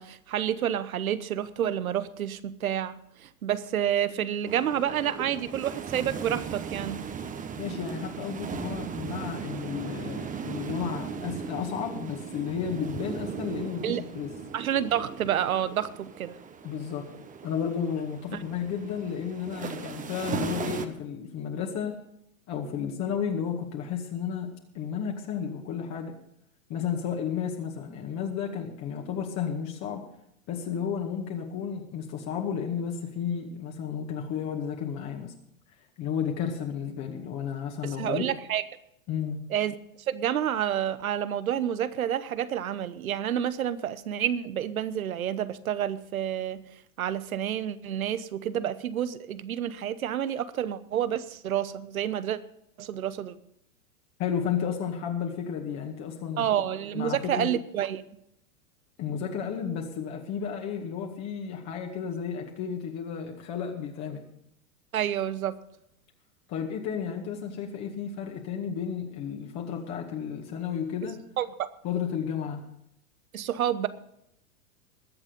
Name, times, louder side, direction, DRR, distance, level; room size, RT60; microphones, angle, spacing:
voice 1, 0.0-7.0 13.8-14.0 14.5-16.4 37.8-38.6 39.5-39.8 40.1-46.6 47.0-52.4 52.8-53.4 56.4-58.0 64.9-65.6 71.4-71.7 73.3-73.9, right 10 dB, 85° right, 15 dB, 1.1 m, -29 dB
sound 1, 4.5-20.9, right 6 dB, 20° right, 1.1 m, -38 dB
voice 2, 7.6-14.3 16.6-17.1 17.4-21.9 22.5-26.2 26.7-30.0 30.5-35.3 36.0-38.2 39.1-39.5 54.2-56.5 56.9-57.5 59.0-64.2 66.5-71.2 71.8-72.6, left 7 dB, 40° left, 2 dB, 2.0 m, -32 dB
21.0 x 7.5 x 5.2 m, 0.78 s
hypercardioid pair, 110°, 41 cm